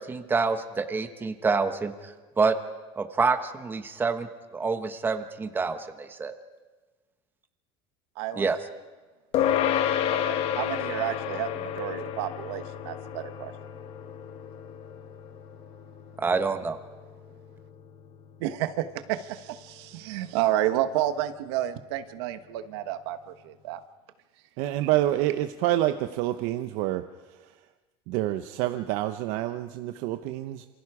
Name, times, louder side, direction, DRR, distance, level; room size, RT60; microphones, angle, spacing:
voice 1, 0.0-2.5 3.0-4.3 4.5-6.3 8.4-8.6 16.2-16.8, right 4 dB, 15° right, 8 dB, 1.3 m, -27 dB
voice 2, 8.1-8.5 10.1-13.5 18.4-23.8 24.8-24.9, right 13 dB, 80° right, 10 dB, 1.3 m, -30 dB
sound 1, 9.3-19.0, left 9 dB, 50° left, 1.6 m, -31 dB
voice 3, 24.6-27.6 28.1-30.7, right 14 dB, 65° right, 9 dB, 0.9 m, -28 dB
27.5 x 25.0 x 4.9 m, 1.3 s
supercardioid pair, 135°, 13 cm